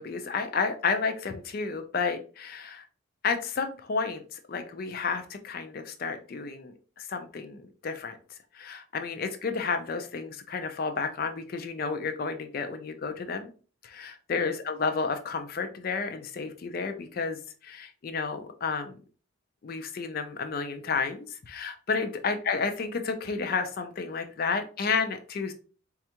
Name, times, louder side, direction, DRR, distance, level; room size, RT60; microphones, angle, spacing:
voice 1, 0.0-2.9 3.2-13.5 13.8-19.0 19.6-25.5, left 5 dB, 45° left, 8 dB, 0.4 m, -31 dB
4.2 x 2.3 x 2.8 m, 0.38 s
head